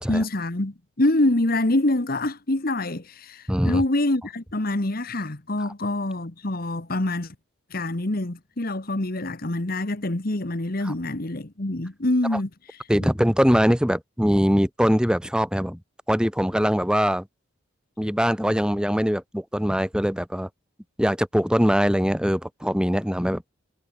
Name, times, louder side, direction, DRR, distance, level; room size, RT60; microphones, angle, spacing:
voice 1, 0.0-7.3 7.7-12.5 13.0-13.1, left 1 dB, 45° left, 1.4 m, -25 dB
voice 2, 3.5-3.8 10.8-10.9 12.3-12.4 12.9-15.8 16.1-17.3 18.0-20.5 21.0-23.5, equal, 5° right, 2.7 m, -22 dB
head